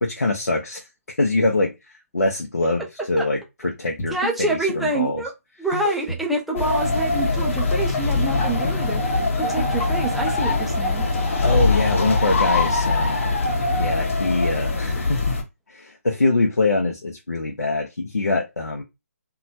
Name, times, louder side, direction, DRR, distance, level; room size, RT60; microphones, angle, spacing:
voice 1, 0.0-5.2 11.4-13.2 13.8-15.4 15.7-18.8, left 2 dB, 80° left, 0.8 m, -24 dB
sound 1, 3.9-4.3 4.7-5.0 5.7-6.2 6.5-6.8 7.6-8.0 8.4-8.8 9.4-9.8 10.3-10.6, left 1 dB, 20° left, 0.8 m, -30 dB
voice 2, 4.1-5.3 5.6-11.1, right 2 dB, ahead, 0.3 m, -27 dB
sound 2, 6.6-15.4, left 3 dB, 55° left, 1.0 m, -22 dB
2.9 x 2.2 x 2.7 m
figure-of-eight pair, 150°, 9 cm